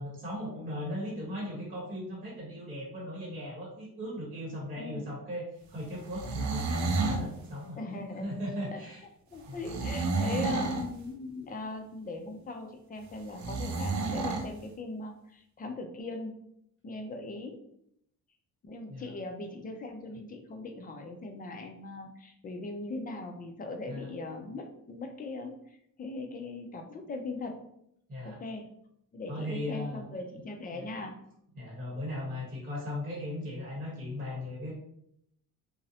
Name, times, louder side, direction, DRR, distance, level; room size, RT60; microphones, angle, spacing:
voice 1, 0.0-7.8 8.2-9.0 9.5-9.6 18.9-19.1 23.9-24.1 28.1-28.4 29.3-30.0 30.7-30.9 31.5-34.7, left 1 dB, 25° right, -5 dB, 0.9 m, -38 dB
voice 2, 4.8-5.1 7.8-8.3 8.7-8.8 9.3-16.3 16.8-17.6 18.6-27.6 28.2-28.6 29.1-31.1, left 2 dB, 25° left, 4 dB, 0.3 m, -40 dB
sound 1, 6.0-7.3 9.6-10.9 13.4-14.5, right 3 dB, 60° right, 0.5 m, -30 dB
2.6 x 2.0 x 2.6 m, 0.72 s
cardioid pair, 130°, 33 cm